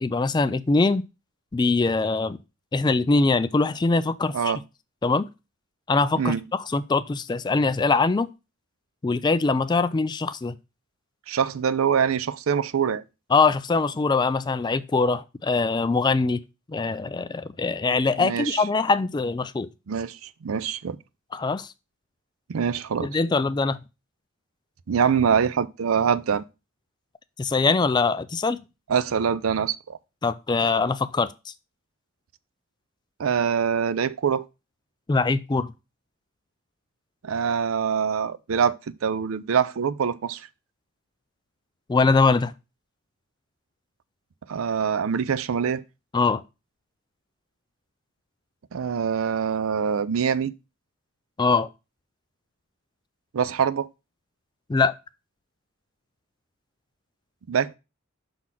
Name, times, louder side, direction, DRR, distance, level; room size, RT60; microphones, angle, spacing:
voice 1, 0.0-1.0 1.5-2.4 2.7-4.5 5.0-5.3 5.9-8.3 9.0-10.5 13.3-16.4 16.7-19.7 21.3-21.7 23.0-23.8 27.4-28.6 30.2-31.5 35.1-35.7 41.9-42.5 46.1-46.4 51.4-51.7 54.7-54.9, left 3 dB, 20° left, 0.3 m, -22 dB
voice 2, 11.3-13.0 18.2-18.6 19.9-21.0 22.5-23.1 24.9-26.4 28.9-30.0 33.2-34.4 37.2-40.4 44.5-45.8 48.7-50.5 53.3-53.9 57.5-57.8, right 7 dB, 80° right, 0.5 m, -24 dB
6.1 x 3.9 x 5.7 m
head